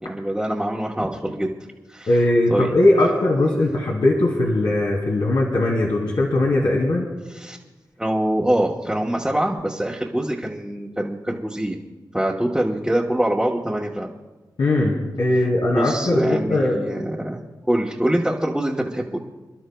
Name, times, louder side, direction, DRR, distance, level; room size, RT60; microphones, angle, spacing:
voice 1, 0.0-1.5 1.9-2.2 2.5-2.8 7.3-7.6 8.0-11.8 12.1-14.1 15.7-17.4 17.7-19.2, right 1 dB, 5° right, -3 dB, 1.1 m, -24 dB
voice 2, 2.1-7.1 14.6-16.8, left 1 dB, 80° left, -2 dB, 2.3 m, -20 dB
29.5 x 12.0 x 2.3 m, 1.2 s
wide cardioid pair, 100°, 7 cm